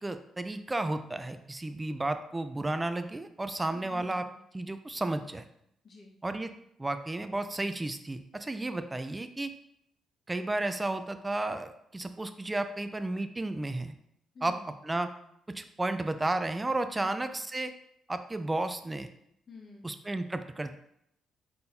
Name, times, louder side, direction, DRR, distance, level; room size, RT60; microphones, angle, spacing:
voice 1, 0.0-4.2 4.5-5.4 6.2-6.5 6.8-9.5 10.3-13.9 14.4-14.5 14.8-15.1 15.5-17.7 18.1-19.1 19.8-20.8, right 2 dB, 15° right, 9 dB, 0.4 m, -33 dB
voice 2, 3.7-4.4 5.8-6.1 14.3-14.7 17.0-17.3 19.5-19.9, left 3 dB, 50° left, -2 dB, 1.2 m, -50 dB
4.3 x 3.7 x 2.6 m, 0.75 s
cardioid pair, 90°, 0 cm